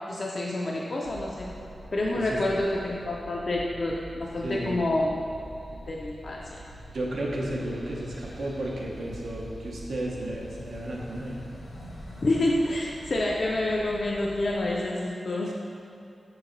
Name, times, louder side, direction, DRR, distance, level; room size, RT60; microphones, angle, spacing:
voice 1, 0.1-1.5 1.9-5.2 5.7-6.6 12.2-15.5, left 1 dB, 45° left, -3 dB, 0.3 m, -28 dB
sound 1, 1.0-14.8, left 1 dB, 75° left, 0.8 m, -46 dB
sound 2, 1.4-12.1, right 2 dB, 50° right, 0.8 m, -48 dB
voice 2, 4.4-4.8 6.9-11.4, right 1 dB, 80° right, -3 dB, 0.6 m, -33 dB
4.4 x 3.1 x 3.7 m, 2.5 s
wide cardioid pair, 145°, 0 cm